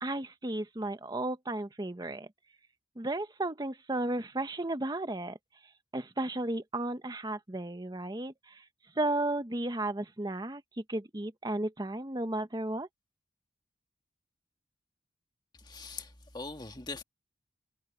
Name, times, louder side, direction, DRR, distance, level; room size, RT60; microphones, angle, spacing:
voice 1, 0.0-2.3 3.0-5.4 5.9-8.6 9.0-10.6 10.9-12.9, right 2 dB, 20° right, 0.9 m, -34 dB
voice 2, 15.6-17.0, left 3 dB, 25° left, 1.8 m, -42 dB
head